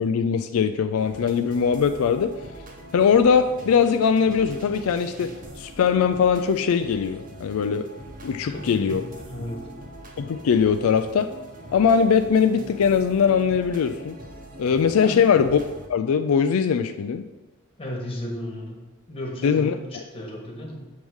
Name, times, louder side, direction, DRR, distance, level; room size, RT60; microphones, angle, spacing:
voice 1, 0.0-2.3 2.9-7.9 8.2-9.0 10.2-11.3 11.7-14.2 14.6-15.6 15.9-17.3 19.4-20.0, left 6 dB, 85° left, 9 dB, 0.4 m, -21 dB
sound 1, 1.0-15.9, right 1 dB, 40° right, 0.9 m, -42 dB
voice 2, 9.3-9.6 15.0-15.3 17.8-20.9, left 1 dB, 25° left, -1 dB, 1.3 m, -34 dB
7.5 x 3.5 x 6.2 m, 1.1 s
head